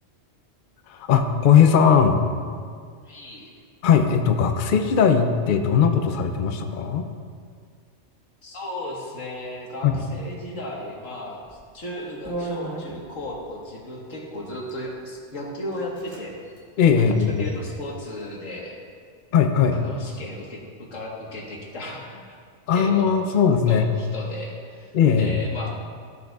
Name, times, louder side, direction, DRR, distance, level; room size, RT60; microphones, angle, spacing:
voice 1, 0.9-2.2 3.8-7.1 9.8-10.0 16.8-17.4 19.3-19.8 22.7-23.9 24.9-25.3, left 7 dB, 55° left, 6 dB, 0.6 m, -19 dB
voice 2, 3.0-3.5 8.4-16.3 17.3-18.8 19.7-22.4 22.7-23.4 23.7-25.7, left 1 dB, 75° left, -2 dB, 1.7 m, -35 dB
sound 1, 11.4-11.7 12.2-13.4 14.3-14.8 15.4-15.5 15.7-16.2 16.5-16.6 17.1-17.8, right 2 dB, 20° right, 1.3 m, -36 dB
14.5 x 6.4 x 2.3 m, 2.1 s
omnidirectional pair, 1.3 m